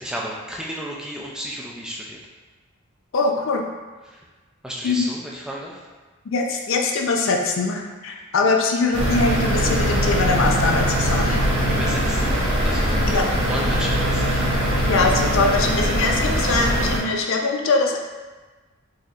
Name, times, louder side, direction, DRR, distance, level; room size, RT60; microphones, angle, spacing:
voice 1, 0.0-2.2 4.1-4.2 4.6-5.9 11.7-12.4 12.6-13.1 13.5-14.5, equal, 5° right, -3 dB, 0.3 m, -33 dB
voice 2, 3.1-3.6 4.8-5.1 6.3-11.4 13.1-13.2 14.8-18.0, left 3 dB, 65° left, 2 dB, 0.4 m, -22 dB
sound 1, 8.9-17.0, equal, 70° right, 1.0 m, -21 dB
4.0 x 2.7 x 2.4 m, 1.3 s
head